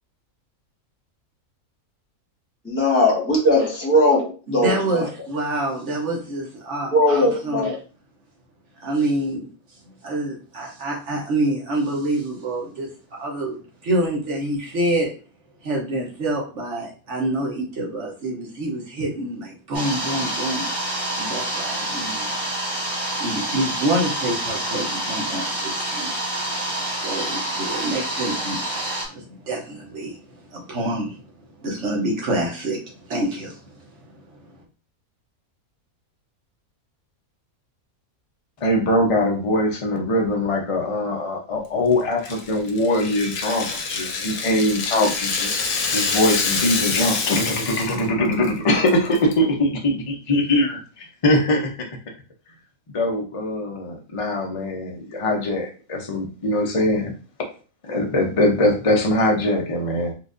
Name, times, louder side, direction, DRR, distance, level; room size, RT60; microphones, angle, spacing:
voice 1, 2.6-5.1 6.9-7.7, left 1 dB, 10° left, -2 dB, 1.0 m, -19 dB
voice 2, 4.5-7.7 8.8-15.1 15.6-20.7 21.1-22.3 23.2-26.3 27.0-34.6, right 1 dB, 60° right, -2 dB, 1.1 m, -27 dB
sound 1, 19.7-29.0, right 1 dB, 30° right, 1.4 m, -27 dB
voice 3, 38.6-51.9 52.9-57.1 57.8-60.1, left 1 dB, 50° left, 1 dB, 0.3 m, -22 dB
Rattle (instrument), 42.2-48.1 48.3-48.5 48.9-49.3, left 4 dB, 85° left, 1.2 m, -26 dB
4.4 x 2.4 x 2.5 m, 0.36 s
omnidirectional pair, 1.5 m